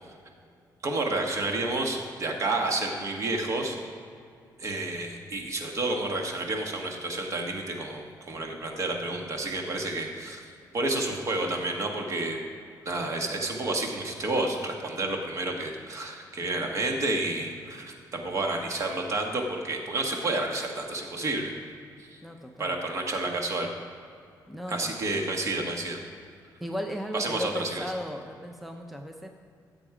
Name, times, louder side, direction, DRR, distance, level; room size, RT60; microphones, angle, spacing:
voice 1, 0.8-3.8 4.6-10.4 10.7-12.4 12.8-21.5 22.0-22.2 22.6-23.7 24.7-26.0 27.1-27.8, right 2 dB, 45° right, 2 dB, 1.6 m, -30 dB
voice 2, 22.2-22.7 24.5-24.9 26.6-29.4, equal, ahead, 3 dB, 0.6 m, -36 dB
14.5 x 7.5 x 5.0 m, 2.4 s
cardioid pair, 135°, 7 cm